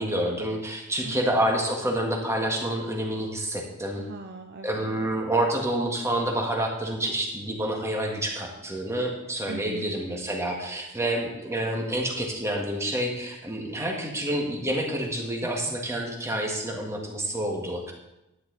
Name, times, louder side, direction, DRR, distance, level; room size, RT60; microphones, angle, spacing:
voice 1, 0.0-4.0 4.6-17.9, right 1 dB, 15° right, 1 dB, 1.6 m, -28 dB
voice 2, 1.0-1.3 4.0-5.0 9.5-9.9 15.7-15.8, right 3 dB, 50° right, 6 dB, 0.6 m, -40 dB
11.5 x 9.7 x 4.0 m, 0.94 s
head